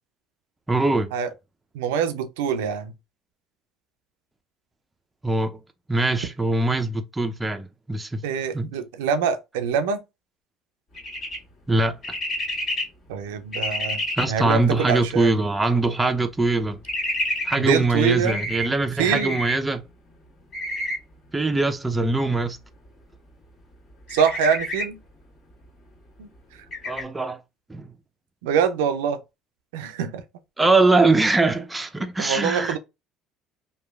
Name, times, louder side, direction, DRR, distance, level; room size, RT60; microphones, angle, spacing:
voice 1, 0.7-1.1 5.2-5.5 5.9-8.2 8.5-8.7 11.7-12.0 14.2-16.8 17.4-19.8 21.3-22.6 26.9-27.4 27.7-27.9 30.6-32.8, right 2 dB, 15° right, 0.4 m, -22 dB
voice 2, 1.7-2.9 8.2-10.0 13.1-14.0 14.3-15.3 17.6-18.5 19.0-19.4 24.1-25.0 26.2-26.3 28.4-29.2 29.7-30.2 32.2-32.8, right 7 dB, 90° right, 0.4 m, -24 dB
sound 1, 10.9-11.4 12.0-12.8 13.5-14.2 16.8-17.6 18.2-18.7 19.1-19.6 20.5-21.0 24.1-24.8 26.7-27.0, left 1 dB, 45° left, 1.6 m, -28 dB
2.9 x 2.3 x 2.2 m
supercardioid pair, 80°, 0 cm